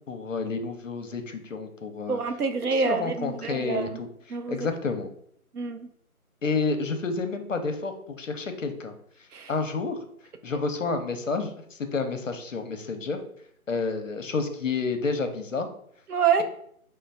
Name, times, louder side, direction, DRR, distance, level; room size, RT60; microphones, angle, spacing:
voice 1, 0.1-2.2 2.7-5.1 6.4-8.9 9.5-10.0 10.4-13.2 13.7-15.7, left 4 dB, 60° left, 7 dB, 0.6 m, -30 dB
voice 2, 2.1-4.0 4.3-4.7 5.5-5.9 9.3-9.5 16.1-16.4, right 5 dB, 80° right, 8 dB, 0.6 m, -27 dB
3.1 x 2.0 x 4.0 m, 0.67 s
figure-of-eight pair, 160°, 45 cm